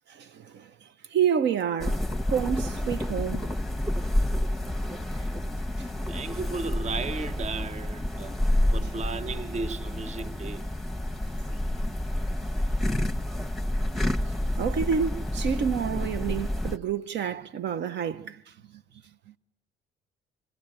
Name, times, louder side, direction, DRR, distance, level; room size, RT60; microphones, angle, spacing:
voice 1, 0.1-2.0 2.3-3.5 5.8-5.9 14.6-18.4, right 7 dB, 60° right, 0.9 m, -29 dB
sound 1, 1.8-16.8, left 1 dB, ahead, 1.0 m, -29 dB
voice 2, 6.1-8.3 8.7-10.6, right 4 dB, 35° right, 0.9 m, -35 dB
26.0 x 16.5 x 8.8 m
hypercardioid pair, 60°, 20 cm